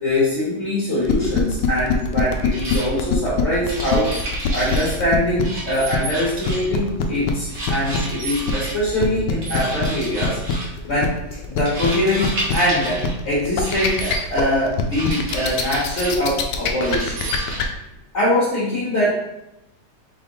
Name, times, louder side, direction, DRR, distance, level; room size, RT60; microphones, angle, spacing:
voice 1, 0.0-4.1 4.5-17.3 18.1-19.1, left 1 dB, 45° left, -9 dB, 1.5 m, -23 dB
sound 1, 1.0-17.6, left 7 dB, 85° left, 1.2 m, -23 dB
sound 2, 2.5-2.9 3.7-5.0 5.4-6.8 7.5-8.8 9.4-10.7 11.7-13.1 13.6-14.2 14.9-16.2 16.8-17.7, right 1 dB, 55° right, 1.5 m, -31 dB
3.8 x 3.3 x 3.9 m, 0.89 s
omnidirectional pair, 1.9 m